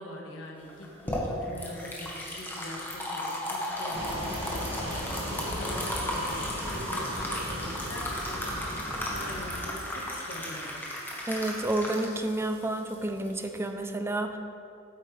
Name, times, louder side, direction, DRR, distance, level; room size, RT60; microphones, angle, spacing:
voice 1, 0.0-10.9, left 1 dB, 75° left, 0 dB, 1.4 m, -43 dB
sound 1, 0.7-13.7, left 1 dB, 10° left, 1.2 m, -35 dB
sound 2, 3.9-9.6, equal, 30° right, 1.8 m, -37 dB
voice 2, 11.3-14.4, right 1 dB, 10° right, 6 dB, 0.4 m, -30 dB
8.5 x 8.5 x 3.3 m, 2.6 s
head